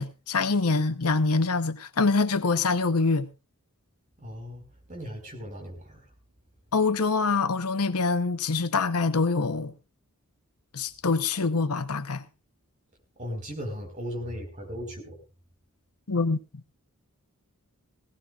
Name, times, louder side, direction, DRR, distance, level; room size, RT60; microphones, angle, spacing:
voice 1, 0.0-3.3 6.7-9.7 10.7-12.2 16.1-16.4, left 4 dB, 85° left, 1.0 m, -25 dB
voice 2, 4.2-6.0 13.2-15.2, equal, 35° right, 4.6 m, -37 dB
18.0 x 17.5 x 2.5 m
head